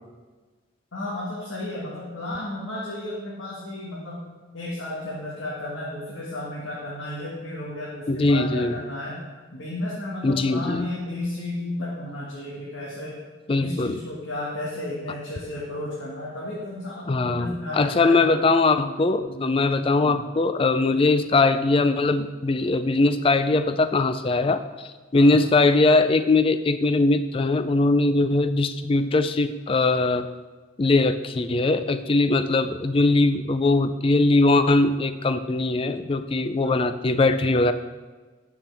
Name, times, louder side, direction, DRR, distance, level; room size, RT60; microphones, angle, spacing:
voice 1, 0.9-4.2 4.5-9.2 9.5-13.3 13.6-18.3 19.2-19.6 20.0-20.2 25.1-25.3 36.6-36.9, left 1 dB, 75° left, -6 dB, 1.7 m, -33 dB
voice 2, 8.1-8.7 10.2-10.9 13.5-14.0 17.1-30.3 30.8-37.7, left 2 dB, 25° left, 11 dB, 0.3 m, -21 dB
13.0 x 5.8 x 3.4 m, 1.3 s
head